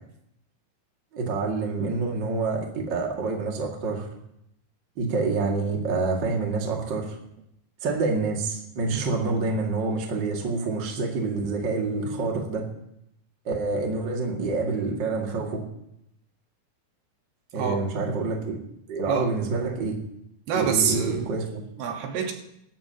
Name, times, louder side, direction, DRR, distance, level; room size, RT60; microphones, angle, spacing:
voice 1, 1.1-4.1 5.0-7.2 7.8-12.7 13.4-15.6 17.5-18.6 18.9-19.9 20.5-21.6, right 3 dB, 35° right, 0 dB, 2.1 m, -27 dB
voice 2, 20.5-21.2 21.8-22.3, right 6 dB, 80° right, 2 dB, 3.5 m, -26 dB
24.5 x 13.5 x 2.9 m, 0.80 s
omnidirectional pair, 4.6 m